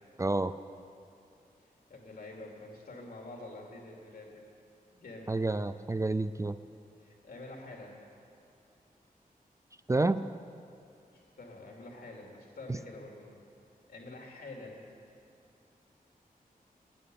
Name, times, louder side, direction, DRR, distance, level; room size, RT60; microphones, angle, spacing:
voice 1, 0.2-0.5 5.3-6.6 9.9-10.2, right 2 dB, 20° right, 12 dB, 0.3 m, -29 dB
voice 2, 1.6-4.4 4.9-5.4 7.0-8.0 11.1-13.4 13.9-14.8, left 2 dB, 80° left, 0 dB, 2.7 m, -47 dB
11.5 x 10.5 x 9.3 m, 2.5 s
wide cardioid pair, 100°, 16 cm